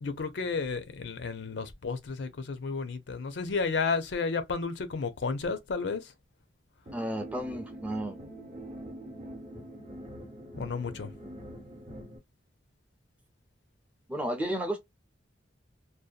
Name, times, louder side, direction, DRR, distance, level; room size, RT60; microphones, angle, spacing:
voice 1, 0.0-6.1 10.6-11.1, left 4 dB, 65° left, 0.5 m, -32 dB
voice 2, 6.9-8.2 14.1-14.8, right 1 dB, 5° right, 0.5 m, -32 dB
sound 1, 6.9-12.2, right 1 dB, 35° right, 0.7 m, -44 dB
2.6 x 2.1 x 2.3 m
head